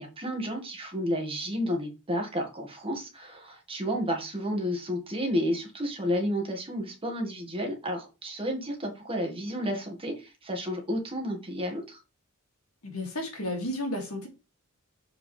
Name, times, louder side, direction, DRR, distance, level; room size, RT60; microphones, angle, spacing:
voice 1, 0.0-12.0, equal, 25° right, 1.7 m, -31 dB
voice 2, 12.8-14.3, left 1 dB, 80° left, 2.4 m, -32 dB
7.4 x 4.8 x 3.3 m
head